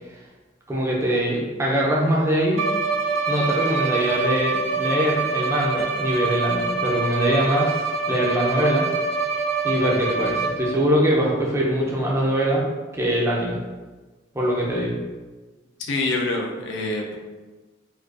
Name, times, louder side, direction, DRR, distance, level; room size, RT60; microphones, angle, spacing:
voice 1, 0.7-2.7 3.3-7.8 8.1-8.9 9.6-12.6 12.9-13.6 14.3-14.9, equal, 15° right, -4 dB, 0.4 m, -22 dB
Bowed string instrument, 2.5-10.8, right 4 dB, 85° right, 0.4 m, -25 dB
voice 2, 15.8-17.1, left 2 dB, 65° left, 0 dB, 0.4 m, -26 dB
2.4 x 2.2 x 2.3 m, 1.3 s
head